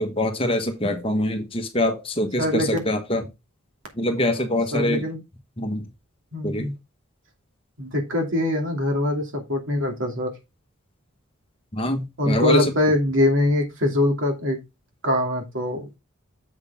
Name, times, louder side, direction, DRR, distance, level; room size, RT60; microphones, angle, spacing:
voice 1, 0.0-3.3 4.0-5.1 5.6-5.9 6.4-6.7 11.7-12.7, left 1 dB, 25° left, 1.3 m, -24 dB
voice 2, 4.7-5.2 6.3-6.7 7.8-10.3 12.2-14.6 15.0-16.0, left 1 dB, 65° right, 2.6 m, -23 dB
7.3 x 6.5 x 3.5 m
head